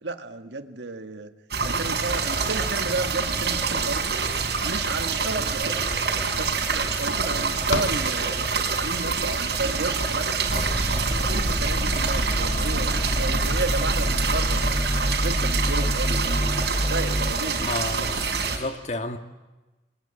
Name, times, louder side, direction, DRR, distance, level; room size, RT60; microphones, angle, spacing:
voice 1, 0.0-1.3 1.6-4.2 4.6-5.8 6.3-10.5 10.9-14.7 14.9-16.5 16.8-17.7, right 3 dB, 85° right, 8 dB, 1.8 m, -33 dB
sound 1, 1.5-18.6, right 4 dB, 70° right, 4.7 m, -26 dB
sound 2, 6.2-9.0, left 2 dB, 90° left, 2.6 m, -34 dB
sound 3, 10.5-17.3, equal, 20° left, 1.1 m, -27 dB
voice 2, 17.6-19.2, left 2 dB, 40° left, 7 dB, 2.0 m, -31 dB
30.0 x 22.5 x 8.9 m, 1.1 s
head